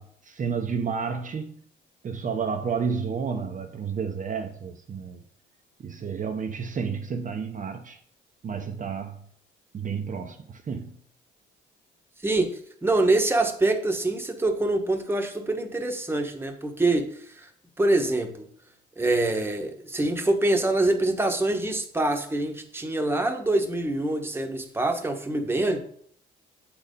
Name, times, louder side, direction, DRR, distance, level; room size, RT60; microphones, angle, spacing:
voice 1, 0.0-1.6 2.0-5.2 5.8-8.0 8.4-9.2 9.7-11.0, right 6 dB, 40° right, 0.8 m, -31 dB
voice 2, 12.2-17.5 17.8-18.5 19.0-25.8, right 2 dB, 10° right, 1.2 m, -25 dB
8.0 x 4.1 x 5.2 m
cardioid pair, 90°, 20 cm